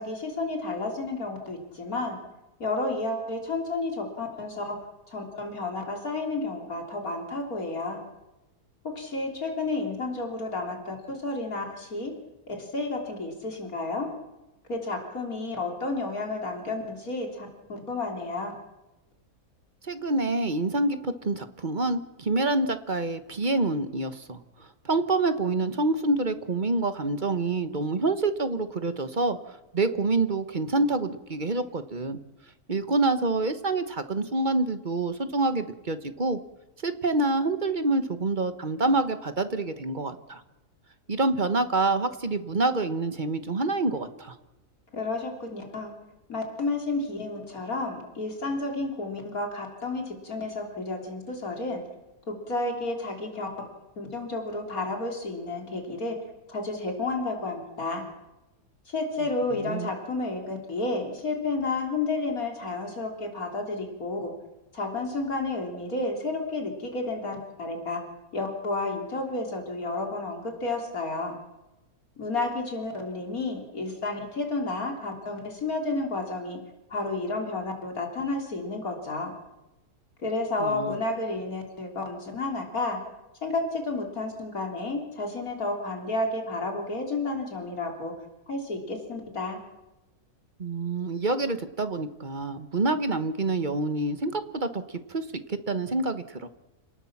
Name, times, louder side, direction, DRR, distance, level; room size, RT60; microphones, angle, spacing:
voice 1, 0.0-2.2 2.6-4.8 5.1-8.0 8.8-12.1 12.5-14.1 14.7-18.5 44.9-45.9 46.3-51.8 52.3-53.7 54.0-56.2 56.5-58.0 58.9-64.3 64.7-68.1 68.3-71.4 72.2-76.6 76.9-79.3 80.2-83.0 83.4-88.1 88.5-89.6, left 2 dB, 65° left, 2 dB, 3.7 m, -31 dB
voice 2, 19.8-32.2 32.7-36.4 36.8-40.4 41.1-44.4 59.5-59.9 80.6-81.0 90.6-96.5, right 2 dB, 35° right, 10 dB, 1.3 m, -27 dB
28.5 x 19.0 x 7.3 m, 1.0 s
omnidirectional pair, 1.6 m